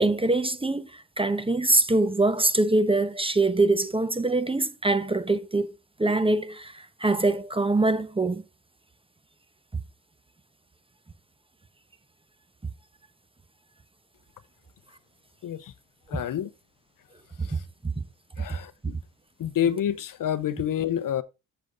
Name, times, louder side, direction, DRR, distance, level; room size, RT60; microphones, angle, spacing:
voice 1, 0.0-5.7 6.0-8.4 16.1-16.2 17.4-17.6 17.8-17.9, right 2 dB, 15° right, 0.9 m, -24 dB
voice 2, 16.1-16.5 18.4-18.9 19.4-21.2, left 10 dB, 55° left, 0.8 m, -28 dB
7.6 x 6.9 x 3.9 m
cardioid pair, 85°, 39 cm